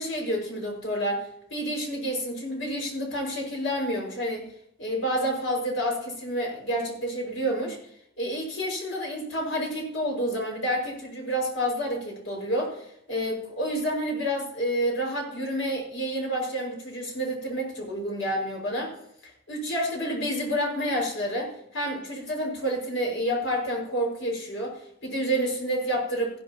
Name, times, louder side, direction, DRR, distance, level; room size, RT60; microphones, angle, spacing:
voice 1, 0.0-4.5 4.8-7.8 8.2-18.9 19.5-26.4, equal, 75° left, 0 dB, 5.8 m, -29 dB
15.5 x 12.0 x 3.0 m, 0.73 s
head